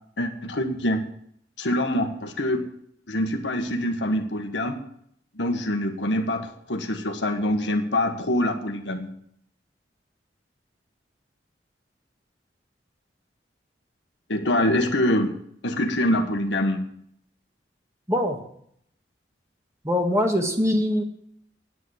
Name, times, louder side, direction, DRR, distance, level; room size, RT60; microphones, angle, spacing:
voice 1, 0.2-1.0 1.6-2.7 3.1-4.8 5.3-9.1 14.3-15.4 15.6-16.9, left 1 dB, 80° left, 5 dB, 1.5 m, -25 dB
voice 2, 19.8-21.0, left 1 dB, 15° right, 3 dB, 1.8 m, -22 dB
9.5 x 9.4 x 8.1 m, 0.68 s
head